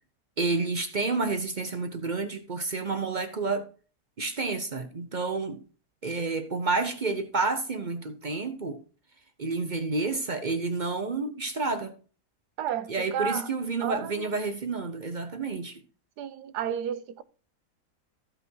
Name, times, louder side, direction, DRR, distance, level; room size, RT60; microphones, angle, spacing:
voice 1, 0.4-3.6 4.2-5.6 6.0-8.8 9.4-11.9 12.9-15.8, right 3 dB, 40° right, 0.6 m, -30 dB
voice 2, 12.6-13.5 13.8-14.4 16.2-17.2, right 8 dB, 75° right, 1.3 m, -32 dB
14.0 x 5.6 x 4.6 m
omnidirectional pair, 1.8 m